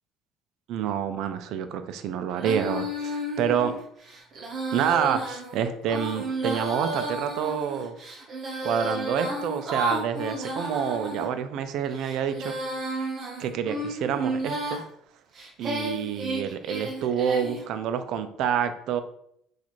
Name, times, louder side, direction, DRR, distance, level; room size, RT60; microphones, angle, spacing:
voice 1, 0.7-3.7 4.7-8.0 8.6-12.5 13.4-14.8 15.6-19.0, right 8 dB, 60° right, 10 dB, 0.4 m, -28 dB
Female singing, 2.4-11.3 11.9-14.8 15.4-17.7, right 1 dB, 35° right, 0.8 m, -32 dB
3.0 x 2.4 x 4.1 m, 0.71 s
cardioid pair, 135°, 0 cm